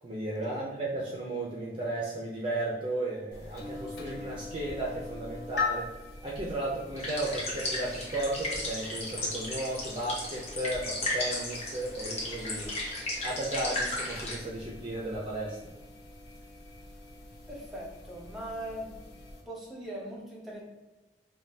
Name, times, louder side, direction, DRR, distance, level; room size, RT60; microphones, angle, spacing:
voice 1, 0.0-5.9 6.2-12.7 13.2-15.6, right 1 dB, 30° right, -3 dB, 0.5 m, -34 dB
sound 1, 3.3-19.4, left 3 dB, 65° left, 0.8 m, -42 dB
sound 2, 7.0-14.4, left 1 dB, 35° left, 1.0 m, -35 dB
voice 2, 17.5-19.2 19.4-20.6, right 1 dB, ahead, -4 dB, 1.0 m, -40 dB
5.2 x 2.3 x 2.7 m, 1.1 s
head